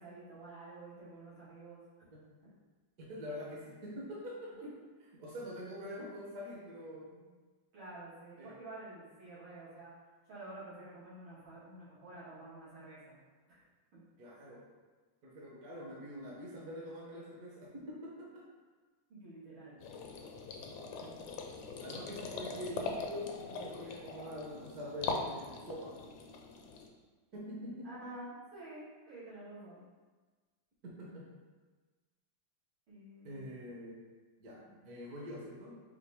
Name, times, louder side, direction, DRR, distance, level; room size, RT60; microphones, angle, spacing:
voice 1, 0.0-1.8 2.4-2.5 4.6-4.7 7.7-9.9 10.3-13.2 13.5-13.6 13.9-14.0 19.1-19.8 27.8-29.8 32.9-33.6, right 2 dB, 85° right, -11 dB, 2.5 m, -49 dB
voice 2, 3.0-4.5 5.1-7.2 8.4-8.6 14.2-14.6 15.2-18.4 20.9-21.1 21.8-25.9 27.3-27.9 30.8-31.3 33.2-34.0 34.4-35.7, equal, 55° right, -4 dB, 1.2 m, -45 dB
sound 1, 19.8-26.9, left 4 dB, 75° left, 0.9 m, -42 dB
4.9 x 2.7 x 3.4 m, 1.3 s
omnidirectional pair, 2.1 m